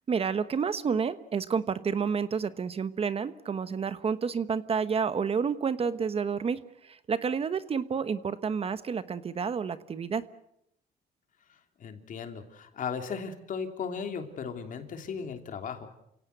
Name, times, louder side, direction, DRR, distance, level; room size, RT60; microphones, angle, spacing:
voice 1, 0.1-10.2, right 6 dB, 35° right, 13 dB, 1.2 m, -30 dB
voice 2, 11.8-15.9, left 6 dB, 50° left, 6 dB, 3.1 m, -36 dB
28.5 x 17.5 x 8.0 m, 0.78 s
cardioid pair, 110°, 17 cm